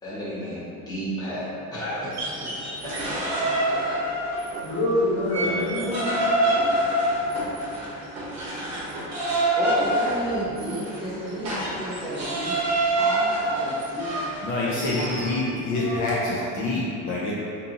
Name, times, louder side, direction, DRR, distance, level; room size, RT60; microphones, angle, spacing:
voice 1, 0.0-1.4 1.7-2.9 3.7-4.0 4.3-4.4 5.8-5.9, equal, 10° left, -11 dB, 0.7 m, -33 dB
sound 1, 2.0-4.7 5.1-15.3, right 1 dB, 50° right, 0.8 m, -26 dB
voice 2, 4.6-6.1 15.7-16.4, left 1 dB, 75° left, -8 dB, 1.0 m, -26 dB
voice 3, 9.5-12.6 13.0-14.2 14.9-15.6, right 1 dB, 15° right, -11 dB, 0.3 m, -32 dB
voice 4, 14.4-17.3, left 2 dB, 55° left, -6 dB, 0.5 m, -26 dB
2.7 x 2.7 x 2.4 m, 2.7 s
cardioid pair, 150°, 36 cm